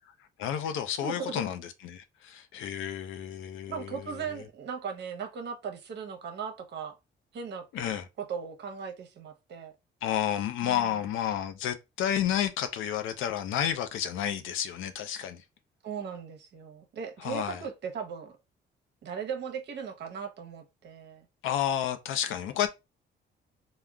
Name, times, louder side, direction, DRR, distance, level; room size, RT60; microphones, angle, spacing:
voice 1, 0.4-4.2 7.7-8.0 10.0-15.4 17.2-17.6 21.4-22.7, left 10 dB, 85° left, 0.5 m, -31 dB
voice 2, 1.0-1.4 3.7-7.0 7.3-7.6 8.2-9.7 10.6-11.0 15.8-18.4 19.0-21.2, right 6 dB, 60° right, 0.7 m, -38 dB
3.6 x 2.1 x 2.2 m
cardioid pair, 90°, 20 cm